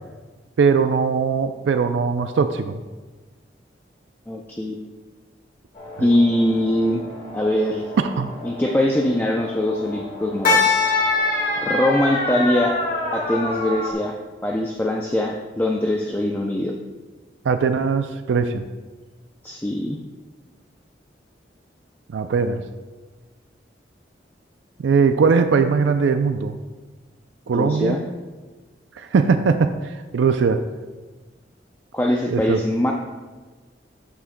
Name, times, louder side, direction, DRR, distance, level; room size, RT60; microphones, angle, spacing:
voice 1, 0.6-2.8 6.0-6.1 8.0-8.3 17.4-18.6 22.1-22.6 24.8-26.6 27.5-28.0 29.0-30.6 32.3-32.6, right 5 dB, 80° right, 8 dB, 0.4 m, -20 dB
voice 2, 4.3-4.8 6.0-7.0 7.3-7.9 8.4-10.9 11.6-12.8 13.1-14.2 14.4-16.7 19.4-20.0 27.5-28.0 31.9-32.9, left 1 dB, 10° left, 0 dB, 0.4 m, -22 dB
sound 1, 5.7-13.9, left 3 dB, 45° left, 1.6 m, -25 dB
12.5 x 6.1 x 2.2 m, 1.3 s
head